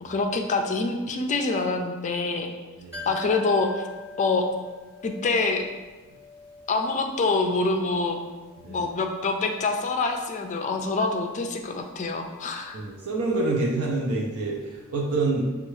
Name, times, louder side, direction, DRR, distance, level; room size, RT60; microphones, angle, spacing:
voice 1, 0.0-2.5 3.1-3.9 4.2-4.5 5.0-5.7 6.7-8.2 8.7-12.8, left 3 dB, 35° left, 4 dB, 0.3 m, -26 dB
sound 1, 2.9-14.5 14.8-14.9, left 3 dB, 10° right, 1.2 m, -47 dB
voice 2, 12.7-15.5, right 2 dB, 80° right, -2 dB, 0.6 m, -27 dB
6.3 x 2.3 x 3.1 m, 1.2 s
head